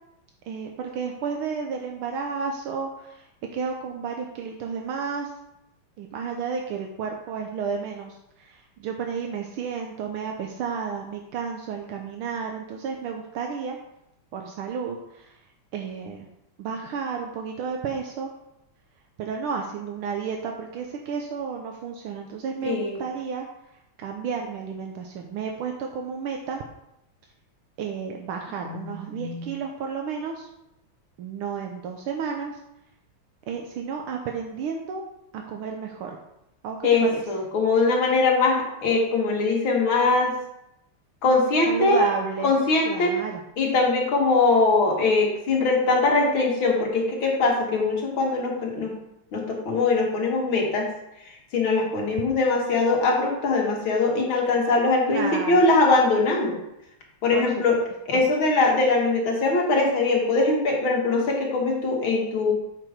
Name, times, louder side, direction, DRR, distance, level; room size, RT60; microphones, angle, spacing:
voice 1, 0.5-3.3 3.5-5.3 6.0-13.8 14.3-15.3 15.7-16.3 16.6-18.3 19.2-23.5 24.0-26.6 27.8-30.5 31.2-32.6 33.5-35.0 35.3-36.2 36.6-37.2 41.7-42.5 42.8-43.4 55.1-55.7 57.3-57.4 58.1-58.2, right 6 dB, 75° right, 2 dB, 1.6 m, -32 dB
voice 2, 22.7-23.0 28.7-29.5 36.8-40.3 41.2-42.1 42.4-43.1 43.6-48.9 49.3-50.9 51.5-56.6 57.2-57.8 58.1-62.5, left 3 dB, 65° left, -1 dB, 2.3 m, -22 dB
7.7 x 4.7 x 5.1 m, 0.83 s
omnidirectional pair, 2.4 m